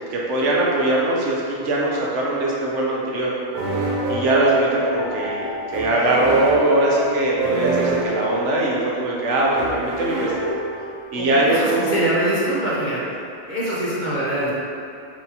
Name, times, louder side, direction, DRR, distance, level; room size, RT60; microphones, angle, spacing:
voice 1, 0.1-3.3 4.1-10.5 11.1-12.0, right 1 dB, 85° right, -4 dB, 1.0 m, -21 dB
sound 1, 3.5-11.2, right 2 dB, 60° right, 0.5 m, -27 dB
voice 2, 11.2-13.0 13.5-14.5, right 1 dB, 45° left, -8 dB, 0.8 m, -23 dB
4.5 x 2.8 x 2.7 m, 2.6 s
omnidirectional pair, 1.2 m